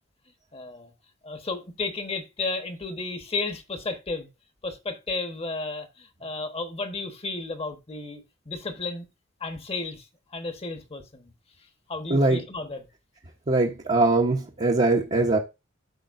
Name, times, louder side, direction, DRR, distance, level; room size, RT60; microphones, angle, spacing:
voice 1, 0.5-0.9 1.2-4.3 4.6-9.1 9.4-10.1 10.3-11.3 11.9-12.9, left 3 dB, 30° left, 1.3 m, -33 dB
voice 2, 12.1-12.4 13.5-15.4, right 2 dB, 35° right, 1.0 m, -21 dB
13.0 x 5.3 x 2.6 m
head